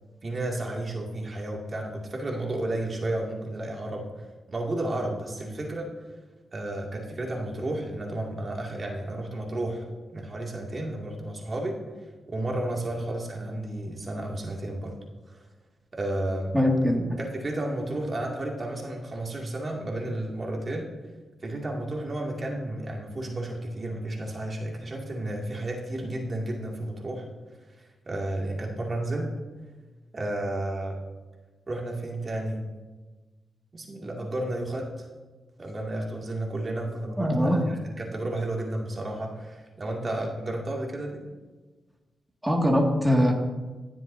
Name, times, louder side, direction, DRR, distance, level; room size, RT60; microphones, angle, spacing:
voice 1, 0.2-4.0 4.5-5.9 6.5-9.8 10.1-11.8 12.3-14.9 15.3-15.4 15.9-16.5 17.2-20.9 21.4-27.3 28.1-29.3 30.1-31.0 31.7-32.6 33.7-35.1 35.6-41.2, right 1 dB, 40° right, -1 dB, 2.3 m, -32 dB
voice 2, 16.5-17.1 37.2-37.6 42.4-43.3, equal, 10° right, -1 dB, 2.0 m, -22 dB
20.5 x 7.5 x 2.7 m, 1.3 s
cardioid pair, 65°, 0 cm